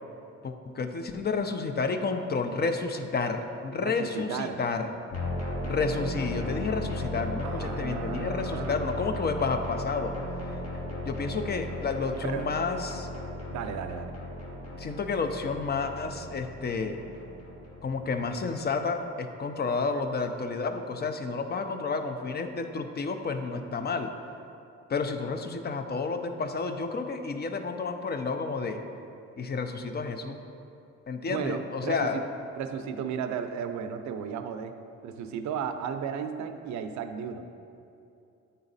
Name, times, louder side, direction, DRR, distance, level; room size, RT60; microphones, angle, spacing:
voice 1, 0.4-4.9 5.7-10.1 11.0-13.1 14.8-17.0 17.8-24.1 24.9-28.8 29.4-30.4 31.1-32.2, left 4 dB, 35° left, 7 dB, 0.5 m, -30 dB
voice 2, 3.8-4.6 7.4-9.1 12.2-12.5 13.5-14.1 31.3-32.2 32.6-34.8 35.0-37.4, right 7 dB, 70° right, 8 dB, 0.5 m, -34 dB
sound 1, 5.1-18.7, left 1 dB, 55° left, 1.2 m, -36 dB
8.7 x 4.0 x 4.0 m, 2.6 s
cardioid pair, 90°, 30 cm